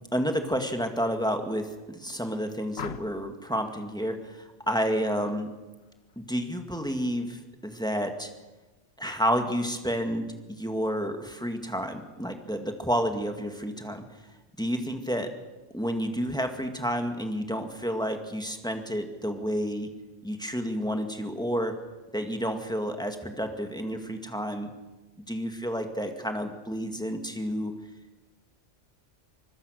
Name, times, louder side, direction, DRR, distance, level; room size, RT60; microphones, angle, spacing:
voice 1, 0.1-5.5 6.2-8.3 9.0-14.0 14.6-15.3 15.7-19.9 20.2-21.7 22.1-24.7 25.3-27.7, equal, 5° left, 5 dB, 1.9 m, -30 dB
sound 1, 2.7-3.4 5.1-5.4 5.8-6.2, left 7 dB, 65° left, 1.1 m, -41 dB
25.0 x 20.5 x 6.5 m, 1.2 s
omnidirectional pair, 1.2 m